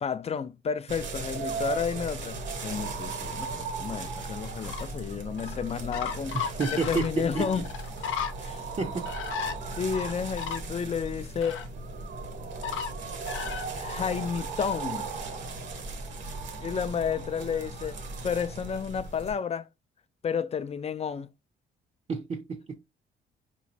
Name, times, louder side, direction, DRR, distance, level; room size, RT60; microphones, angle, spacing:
voice 1, 0.0-6.4 6.7-7.6 8.0-8.1 8.4-8.6 9.8-11.6 13.7-15.1 16.6-18.0 18.2-19.7 20.2-21.3, left 7 dB, 30° left, 0.4 m, -31 dB
sound 1, 0.9-19.4, right 3 dB, 65° right, 1.1 m, -37 dB
sound 2, 3.9-4.1 4.5-4.9 5.4-5.6 5.9-8.3 9.1-9.5 9.9-10.6 11.1-11.2 11.4-11.7 12.6-12.9 13.3-14.0 14.6-14.7, left 7 dB, 85° left, 0.7 m, -34 dB
voice 2, 6.3-7.5 8.8-9.1 22.1-22.8, right 4 dB, 35° right, 0.6 m, -30 dB
4.8 x 3.1 x 2.6 m
cardioid pair, 90°, 20 cm